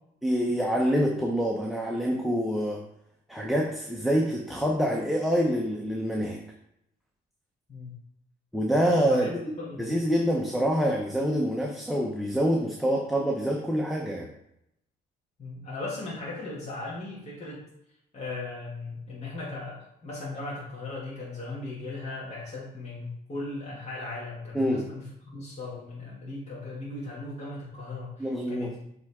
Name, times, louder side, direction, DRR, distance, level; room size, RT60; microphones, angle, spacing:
voice 1, 0.2-2.8 3.3-6.4 8.5-9.3 9.8-14.3 24.5-24.9 28.2-28.7, equal, ahead, -1 dB, 0.8 m, -26 dB
voice 2, 9.0-10.0 15.4-17.6 18.1-28.8, left 2 dB, 35° left, -7 dB, 2.0 m, -37 dB
7.4 x 3.6 x 3.6 m, 0.78 s
cardioid pair, 90°, 20 cm